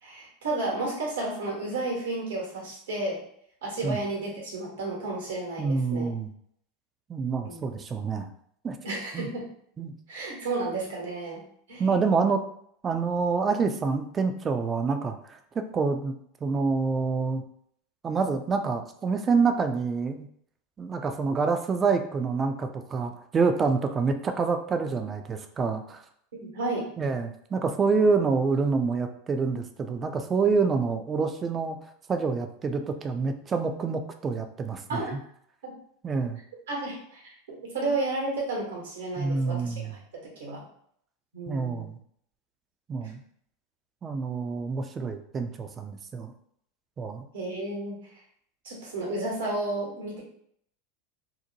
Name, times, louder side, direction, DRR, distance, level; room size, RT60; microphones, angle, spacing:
voice 1, 0.0-3.2 3.6-6.1 7.4-7.6 8.8-9.4 10.1-11.4 11.7-11.9 26.3-26.9 34.9-35.1 35.6-35.7 36.7-40.0 40.4-40.6 41.3-41.9 43.0-43.1 47.3-48.0 48.6-50.2, right 2 dB, 80° right, -3 dB, 1.1 m, -32 dB
voice 2, 5.6-6.3 7.1-8.3 8.6-8.8 9.1-9.3 9.8-9.9 11.8-12.4 12.8-15.4 15.7-16.1 16.4-17.4 18.0-20.3 20.8-26.0 27.0-31.8 32.1-35.2 36.0-36.4 39.2-39.9 41.5-42.0 42.9-43.2 44.0-46.3 47.0-47.2, right 4 dB, 25° right, 7 dB, 0.3 m, -27 dB
2.7 x 2.1 x 2.7 m, 0.67 s
hypercardioid pair, 90°, 0 cm